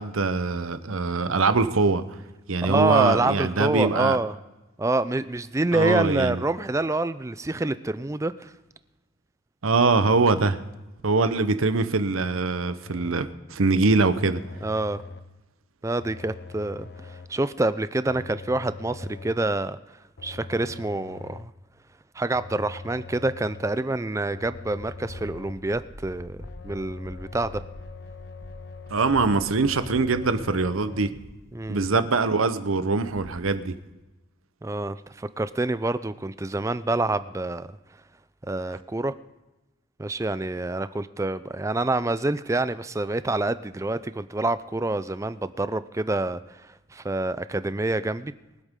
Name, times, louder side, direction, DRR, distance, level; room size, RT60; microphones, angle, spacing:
voice 1, 0.0-2.0 2.5-4.2 5.7-6.4 9.6-10.6 11.0-14.4 28.9-31.1 31.7-33.8, right 3 dB, 85° right, 11 dB, 0.9 m, -23 dB
voice 2, 2.6-4.3 4.8-8.5 14.6-15.0 15.8-19.8 20.2-21.5 22.2-26.4 26.6-27.6 31.5-31.8 34.6-37.7 38.5-39.1 40.0-48.3, right 2 dB, 15° right, 14 dB, 0.4 m, -27 dB
sound 1, 12.8-13.4 13.9-15.4 16.0-17.5 18.1-19.5 20.2-21.6 22.3-23.9 24.3-25.7 26.4-31.1, left 4 dB, 50° left, 0.7 m, -43 dB
sound 2, 24.4-33.5, equal, 20° left, 1.7 m, -45 dB
23.0 x 8.2 x 3.7 m, 1.1 s
head